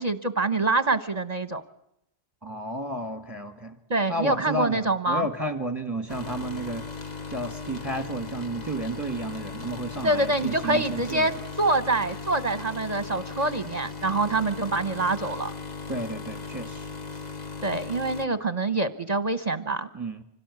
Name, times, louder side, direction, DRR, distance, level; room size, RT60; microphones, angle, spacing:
voice 1, 0.0-1.6 3.9-5.3 10.0-11.3 11.6-15.5 17.6-19.9, right 2 dB, 40° right, 11 dB, 1.1 m, -25 dB
voice 2, 2.4-3.7 4.1-6.8 7.3-11.3 15.9-16.9 19.9-20.2, right 1 dB, 15° right, 9 dB, 1.6 m, -32 dB
sound 1, 6.1-18.3, left 4 dB, 40° left, 1.5 m, -38 dB
26.0 x 17.5 x 9.6 m, 0.79 s
omnidirectional pair, 1.1 m